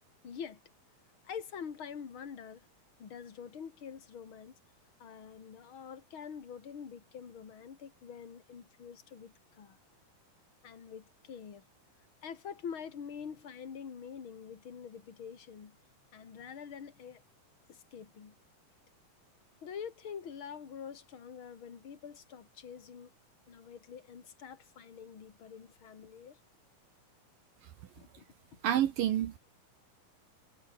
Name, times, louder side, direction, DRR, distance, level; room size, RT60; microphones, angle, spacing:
voice 1, 0.2-0.6 1.2-2.7 3.0-4.6 5.0-9.8 10.6-11.6 12.2-15.8 16.1-17.2 17.7-18.4 19.6-23.1 23.5-26.4 28.0-28.2 28.5-28.6, left 7 dB, 35° left, 3.0 m, -46 dB
voice 2, 28.6-29.4, right 11 dB, 65° right, 2.9 m, -29 dB
omnidirectional pair, 4.5 m